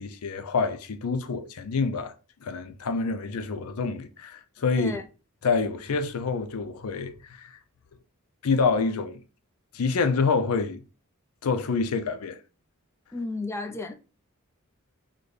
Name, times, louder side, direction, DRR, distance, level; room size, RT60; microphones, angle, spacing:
voice 1, 0.0-2.1 2.4-4.9 5.4-7.6 8.4-9.2 9.7-10.8 11.4-12.4, left 4 dB, 75° left, 0.5 m, -27 dB
voice 2, 13.1-13.9, left 2 dB, 10° left, 0.5 m, -32 dB
3.9 x 2.2 x 3.2 m
head